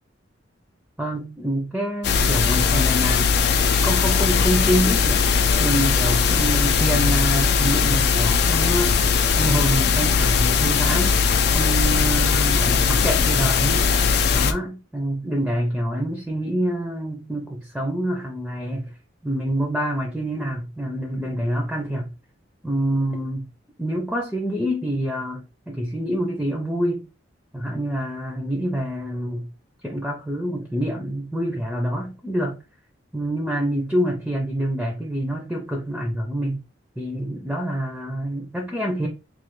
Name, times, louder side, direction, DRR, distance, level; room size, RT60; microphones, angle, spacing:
voice 1, 1.0-3.3 3.8-5.3 5.6-9.0 9.4-11.2 11.5-13.9 14.3-18.9 19.2-22.1 22.6-23.5 23.8-27.0 27.5-29.5 29.8-32.6 33.1-36.6 37.0-39.1, right 1 dB, 5° right, 0.5 m, -26 dB
sound 1, 2.0-14.5, left 6 dB, 60° left, 0.4 m, -19 dB
3.1 x 2.2 x 3.1 m
head